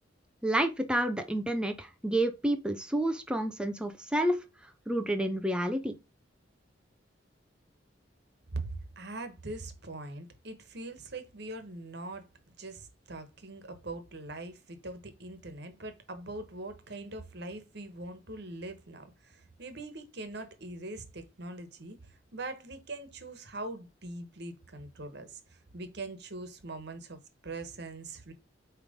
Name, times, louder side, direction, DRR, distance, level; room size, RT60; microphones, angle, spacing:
voice 1, 0.4-4.4 4.9-6.0, right 1 dB, 5° right, 0.6 m, -29 dB
voice 2, 8.5-12.3 12.6-22.0 22.3-28.3, right 2 dB, 60° right, 1.4 m, -42 dB
8.8 x 3.3 x 5.1 m
head